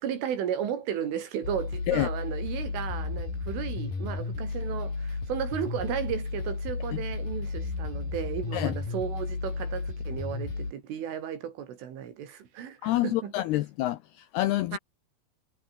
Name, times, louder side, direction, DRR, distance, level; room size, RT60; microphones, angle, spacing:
voice 1, 0.0-13.3 14.7-14.8, right 9 dB, 80° right, 5.8 m, -34 dB
sound 1, 1.4-10.7, left 4 dB, 45° left, 8.9 m, -33 dB
voice 2, 12.8-14.8, left 16 dB, 85° left, 2.3 m, -27 dB
omnidirectional pair, 5.6 m